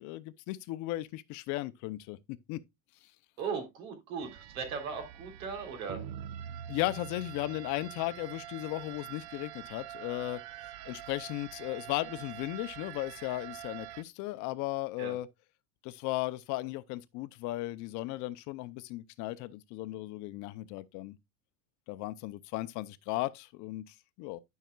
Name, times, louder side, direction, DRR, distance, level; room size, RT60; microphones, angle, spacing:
voice 1, 0.0-2.2 2.5-2.6 6.7-10.4 10.8-15.3 15.8-21.2 21.9-24.4, left 17 dB, 45° left, 0.6 m, -36 dB
voice 2, 3.4-6.0 15.0-15.1, right 5 dB, 80° right, 3.5 m, -38 dB
sound 1, 4.2-14.0, right 11 dB, 40° right, 0.6 m, -45 dB
12.5 x 5.7 x 2.3 m
supercardioid pair, 155°, 41 cm